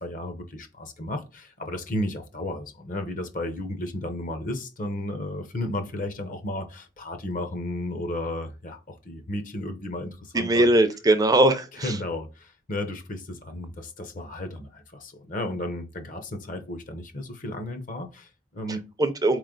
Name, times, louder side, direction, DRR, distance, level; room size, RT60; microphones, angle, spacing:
voice 1, 0.0-10.6 11.8-18.9, left 1 dB, 45° left, 0.8 m, -33 dB
voice 2, 10.3-11.9 19.0-19.4, right 1 dB, 20° right, 0.4 m, -20 dB
4.2 x 3.2 x 3.8 m
head